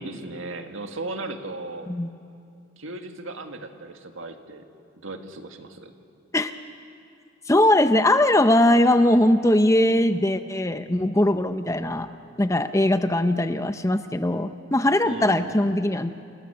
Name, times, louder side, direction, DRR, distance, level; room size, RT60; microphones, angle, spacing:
voice 1, 0.0-1.9 2.8-4.6 5.0-5.9 15.0-15.6, right 2 dB, 80° right, 5 dB, 1.9 m, -36 dB
voice 2, 7.5-12.1 12.4-16.1, left 1 dB, 15° left, 10 dB, 0.6 m, -20 dB
29.5 x 20.0 x 6.9 m, 2.6 s
head